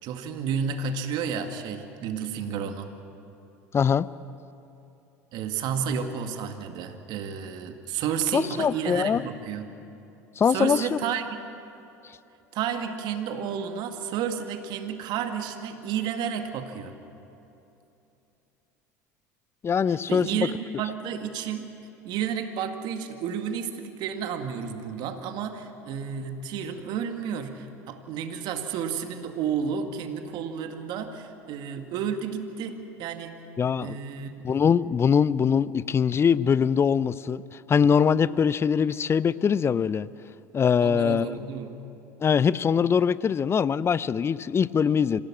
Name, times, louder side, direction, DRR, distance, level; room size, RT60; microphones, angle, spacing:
voice 1, 0.0-2.9 5.3-9.7 10.5-11.4 12.5-17.0 19.9-21.7 22.0-33.4 33.8-34.3 40.8-41.8, right 7 dB, 55° right, 6 dB, 1.9 m, -31 dB
voice 2, 3.7-4.1 8.3-9.2 10.4-10.8 19.6-20.5 33.6-34.0 34.4-37.4 37.7-40.1 40.5-41.3 42.2-45.2, left 7 dB, 30° left, 18 dB, 0.6 m, -22 dB
26.0 x 16.5 x 7.5 m, 2.9 s
hypercardioid pair, 75°, 9 cm